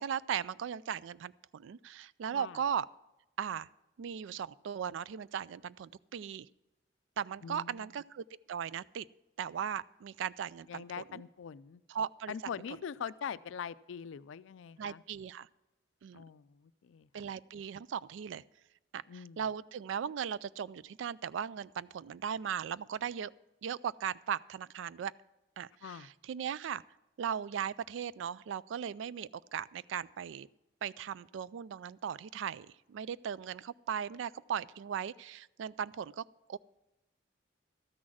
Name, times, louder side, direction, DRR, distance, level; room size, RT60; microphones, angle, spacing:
voice 1, 0.0-2.9 3.4-3.7 4.0-6.5 7.2-9.0 9.4-11.2 11.9-12.3 14.8-15.5 16.0-16.2 17.1-18.4 18.9-23.3 23.6-25.1 25.6-26.8 27.2-30.5 30.8-36.2 36.5-36.6, right 8 dB, 70° right, 20 dB, 0.3 m, -38 dB
voice 2, 7.4-7.9 10.7-11.8 12.3-15.0 16.1-17.2 19.1-19.4 25.8-26.1, left 7 dB, 75° left, 16 dB, 0.4 m, -43 dB
13.0 x 6.3 x 7.4 m, 0.96 s
head